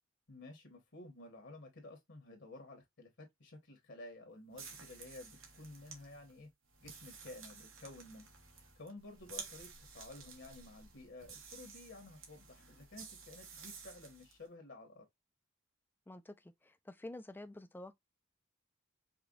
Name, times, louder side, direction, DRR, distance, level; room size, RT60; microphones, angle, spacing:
voice 1, 0.3-6.5 6.8-8.3 8.7-15.0, left 2 dB, 60° left, 1.2 m, -53 dB
sound 1, 4.5-14.4, right 5 dB, 80° right, 1.3 m, -53 dB
voice 2, 16.1-18.0, left 1 dB, 10° left, 0.4 m, -49 dB
4.9 x 2.3 x 2.4 m
head